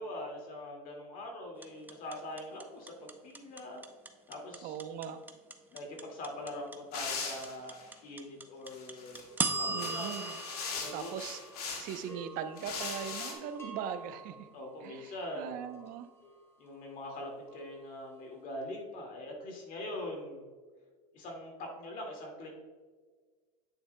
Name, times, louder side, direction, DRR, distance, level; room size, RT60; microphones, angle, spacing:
voice 1, 0.0-3.8 4.3-4.7 5.7-9.2 9.6-10.4 10.8-11.1 14.5-15.7 16.6-20.4 21.1-22.6, left 1 dB, 45° left, 1 dB, 2.1 m, -43 dB
sound 1, 1.6-11.8, right 3 dB, 10° right, 0.6 m, -37 dB
voice 2, 4.6-5.2 9.7-10.4 10.9-11.4 11.8-14.5 14.8-16.1, right 8 dB, 50° right, 10 dB, 0.7 m, -40 dB
sound 2, 6.9-7.9 8.7-9.2 9.7-12.0 12.6-13.3, left 5 dB, 85° left, 1.8 m, -40 dB
sound 3, 9.3-11.6 11.9-18.3, right 2 dB, 15° left, 1.7 m, -51 dB
8.6 x 7.6 x 2.2 m, 1.5 s
supercardioid pair, 110°, 19 cm